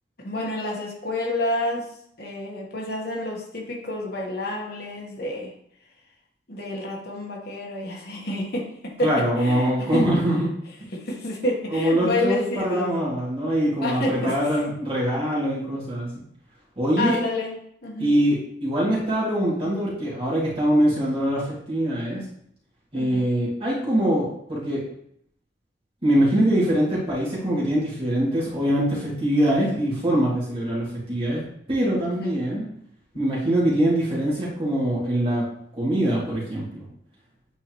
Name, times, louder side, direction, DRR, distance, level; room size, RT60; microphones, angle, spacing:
voice 1, 0.2-1.9 2.2-5.5 6.5-9.1 9.4-10.1 10.9-12.9 13.8-14.4 17.0-18.2 22.9-23.3 32.0-32.4, left 1 dB, 55° left, -1 dB, 1.4 m, -29 dB
voice 2, 9.0-10.5 11.7-16.1 16.8-17.2 18.0-22.2 22.9-24.8 26.0-31.4 31.7-32.6 33.1-35.4 35.8-36.9, right 1 dB, 30° right, -8 dB, 2.5 m, -23 dB
9.0 x 4.3 x 3.1 m, 0.70 s
head